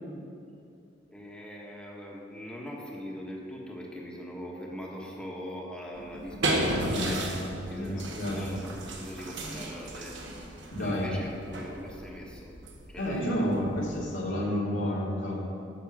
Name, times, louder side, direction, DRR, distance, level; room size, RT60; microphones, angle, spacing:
voice 1, 1.1-10.3 10.8-12.5 12.9-13.5, equal, 5° left, -3 dB, 1.3 m, -41 dB
sound 1, 6.0-14.0, right 1 dB, 70° right, 1.4 m, -35 dB
voice 2, 6.8-8.5 10.7-11.1 13.0-15.4, equal, 90° left, -5 dB, 2.5 m, -31 dB
8.9 x 6.5 x 7.4 m, 2.6 s
head